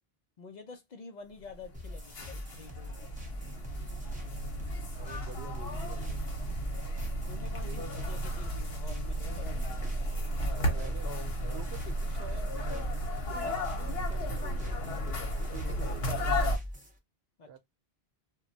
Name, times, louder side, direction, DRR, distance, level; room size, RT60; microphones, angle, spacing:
voice 1, 0.4-3.1 7.3-9.6 13.8-14.0 17.4-17.6, left 4 dB, 55° left, 0.6 m, -49 dB
sound 1, 1.5-16.6, equal, 75° left, 1.0 m, -34 dB
sound 2, 1.7-17.0, left 1 dB, 10° right, 0.6 m, -44 dB
voice 2, 5.0-6.3 7.6-7.8 10.6-12.5 13.1-16.6 17.4-17.6, right 9 dB, 80° right, 0.8 m, -48 dB
2.2 x 2.2 x 3.8 m
omnidirectional pair, 1.0 m